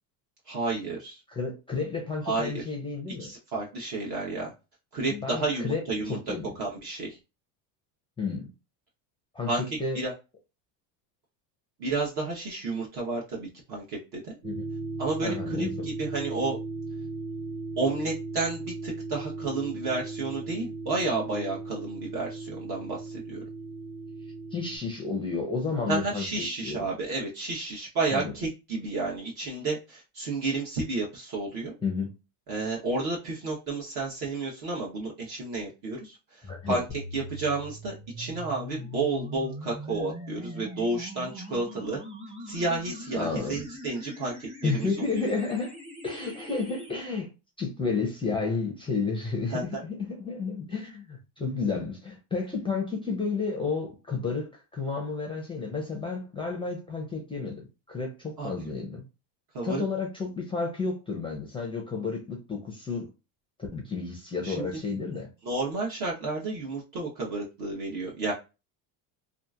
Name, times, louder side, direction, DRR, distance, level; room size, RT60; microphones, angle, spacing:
voice 1, 0.5-1.2 2.2-2.6 3.2-4.5 4.9-6.2 6.6-7.2 9.5-9.6 9.9-10.1 11.8-14.4 15.0-16.6 17.8-23.4 25.9-31.7 32.5-36.8 37.1-42.0 42.5-45.1 49.5-49.8 58.4-58.7 59.5-59.8 64.4-64.7 65.4-68.3, right 3 dB, 50° right, 0.9 m, -31 dB
voice 2, 1.3-3.3 5.1-6.5 8.2-8.5 9.3-9.5 9.8-10.0 14.4-14.6 15.2-15.9 24.5-26.9 28.1-28.3 31.8-32.1 36.4-36.8 43.1-43.6 44.6-45.8 46.0-47.3 47.6-59.0 59.6-63.1 63.6-65.3, left 4 dB, 10° left, 0.4 m, -31 dB
sound 1, 14.4-24.8, right 3 dB, 75° right, 1.2 m, -37 dB
sound 2, 36.9-46.9, equal, 10° right, 0.8 m, -41 dB
2.8 x 2.4 x 2.3 m
supercardioid pair, 120°, 48 cm